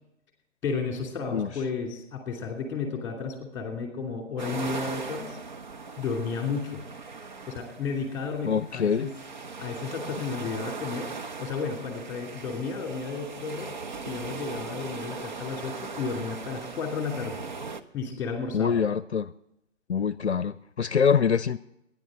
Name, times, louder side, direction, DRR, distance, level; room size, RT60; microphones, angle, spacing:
voice 1, 0.6-5.4 6.0-6.8 7.5-9.1 9.6-11.1 11.4-13.7 14.1-17.4 17.9-18.8, left 5 dB, 5° left, 3 dB, 2.7 m, -33 dB
sound 1, 4.4-17.8, right 4 dB, 40° right, 0.9 m, -39 dB
voice 2, 8.4-9.1 18.5-19.3 19.9-21.6, left 7 dB, 60° left, 17 dB, 0.6 m, -24 dB
23.0 x 10.5 x 3.7 m, 0.84 s
figure-of-eight pair, 140°, 37 cm